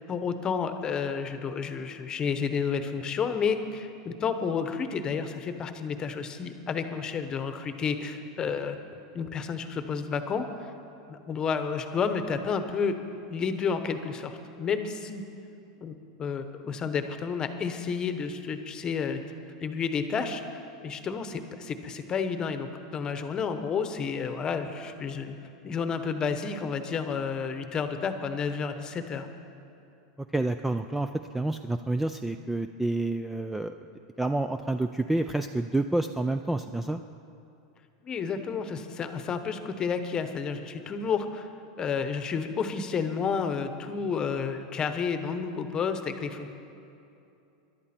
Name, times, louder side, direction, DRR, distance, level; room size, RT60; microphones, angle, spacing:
voice 1, 0.1-8.8 9.1-10.7 11.1-13.0 13.3-15.2 15.8-19.2 19.6-20.4 20.8-25.4 25.6-29.3 38.0-41.5 41.8-46.5, left 6 dB, 25° left, 8 dB, 0.9 m, -31 dB
voice 2, 30.3-33.7 34.2-37.0, right 2 dB, 5° right, 8 dB, 0.3 m, -29 dB
22.0 x 11.5 x 4.3 m, 2.7 s
supercardioid pair, 145°, 3 cm